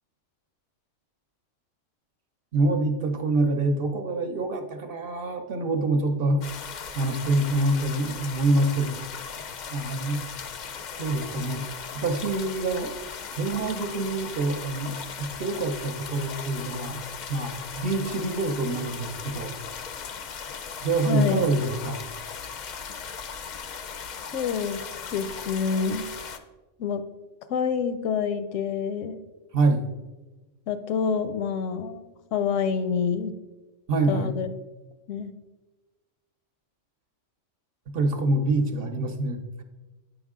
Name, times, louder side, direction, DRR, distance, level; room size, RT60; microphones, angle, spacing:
voice 1, 2.5-6.4 6.9-9.0 9.7-10.2 11.0-11.7 11.9-12.9 13.3-17.0 17.3-19.5 20.8-22.0 29.5-29.9 33.9-34.4 37.9-39.6, right 2 dB, 55° right, 6 dB, 0.8 m, -26 dB
sound 1, 6.4-26.4, left 6 dB, 60° left, 0.4 m, -38 dB
voice 2, 21.1-21.5 24.3-24.8 25.1-26.0 26.8-27.0 27.5-29.2 30.7-33.3 34.1-34.5 35.1-35.3, left 6 dB, 85° left, 11 dB, 0.9 m, -27 dB
8.7 x 5.4 x 3.6 m, 1.1 s
omnidirectional pair, 1.3 m